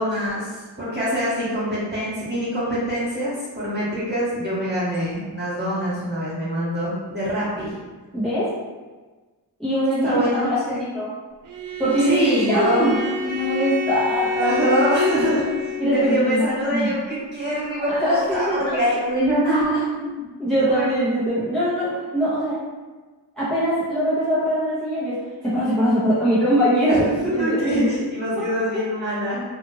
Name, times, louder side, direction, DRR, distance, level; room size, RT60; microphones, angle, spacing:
voice 1, 0.0-7.7 10.0-10.8 12.1-12.9 14.3-15.5 15.9-20.2 20.6-20.9 26.9-29.4, equal, 25° right, -10 dB, 1.5 m, -24 dB
voice 2, 8.1-8.5 9.6-10.6 10.9-11.1 11.8-14.5 15.8-16.9 17.9-18.8 20.4-22.6 23.4-25.2 25.4-27.9 28.4-28.5, equal, ahead, -12 dB, 0.9 m, -22 dB
Bowed string instrument, 11.5-16.2, left 2 dB, 50° right, 0.5 m, -28 dB
2.6 x 2.5 x 2.8 m, 1.3 s
cardioid pair, 70°, 41 cm